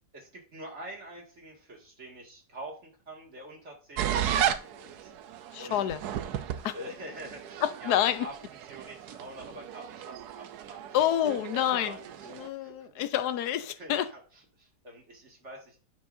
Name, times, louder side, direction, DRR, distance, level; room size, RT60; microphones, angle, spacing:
voice 1, 0.1-5.1 5.6-5.8 6.7-10.8 11.7-13.2 13.8-15.9, right 1 dB, 45° right, 2.4 m, -45 dB
sound 1, 4.0-12.5, right 10 dB, 80° right, 1.2 m, -35 dB
voice 2, 5.5-6.0 6.6-6.7 7.6-8.3 10.9-12.0 12.3-14.1, left 11 dB, 90° left, 1.2 m, -28 dB
9.5 x 6.7 x 2.6 m
omnidirectional pair, 1.7 m